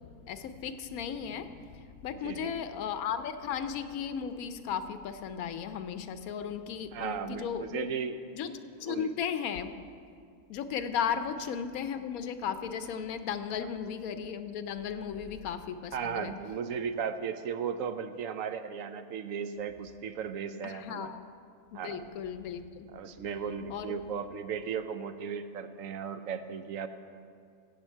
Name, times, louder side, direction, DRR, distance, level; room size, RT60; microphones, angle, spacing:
voice 1, 0.3-7.9 8.3-8.5 8.8-9.7 10.5-16.3 20.6-21.2 21.7-22.8 23.7-23.9, left 7 dB, 85° left, 10 dB, 1.1 m, -35 dB
voice 2, 2.2-2.6 6.9-8.2 8.8-9.1 15.9-21.1 21.7-22.1 22.9-26.9, right 7 dB, 70° right, 10 dB, 1.0 m, -36 dB
16.0 x 8.5 x 4.5 m, 2.3 s
omnidirectional pair, 1.5 m